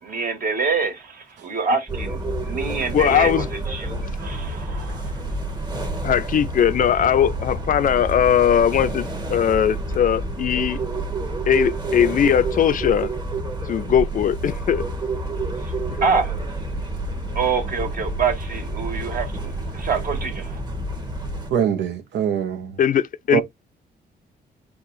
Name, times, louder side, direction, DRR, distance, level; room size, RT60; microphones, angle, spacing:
voice 1, 0.0-3.3 3.7-5.2 5.9-6.1 16.0-16.3 17.3-19.3 19.9-20.5, right 5 dB, 55° right, 1.7 m, -25 dB
sound 1, 1.9-21.5, right 2 dB, 25° right, 1.1 m, -29 dB
voice 2, 2.9-3.5 6.0-10.8 11.5-13.2 13.6-14.9 15.9-16.0 22.8-23.4, left 9 dB, 50° left, 0.4 m, -19 dB
voice 3, 21.5-22.8 23.3-23.4, right 9 dB, 85° right, 0.9 m, -23 dB
4.7 x 2.4 x 4.0 m
cardioid pair, 105°, 18 cm